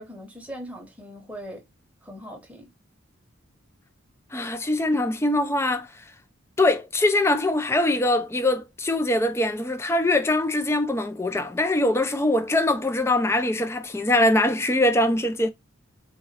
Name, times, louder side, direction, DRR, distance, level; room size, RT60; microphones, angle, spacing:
voice 1, 0.0-1.7 2.0-2.7, equal, 5° right, 0.8 m, -40 dB
voice 2, 4.3-5.9 6.6-15.5, left 1 dB, 15° left, 0.3 m, -22 dB
3.9 x 2.9 x 2.8 m
head